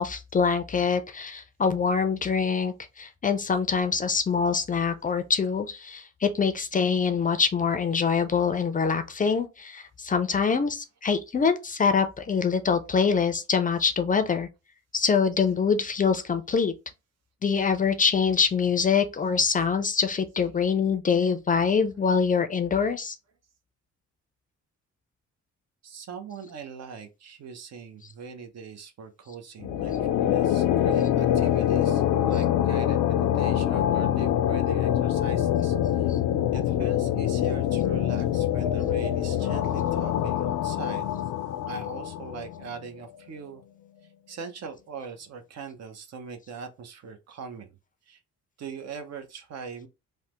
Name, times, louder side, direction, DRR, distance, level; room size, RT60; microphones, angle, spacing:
voice 1, 0.0-14.5 14.9-16.7 17.4-23.2 36.1-36.2, left 6 dB, 30° left, 0.4 m, -24 dB
voice 2, 25.8-36.1 36.5-41.1 41.7-43.6 44.3-47.7 48.1-48.2 48.6-49.9, right 6 dB, 60° right, 0.7 m, -41 dB
sound 1, 29.6-42.7, left 11 dB, 85° left, 0.5 m, -25 dB
3.2 x 2.1 x 2.9 m
cardioid pair, 90°, 30 cm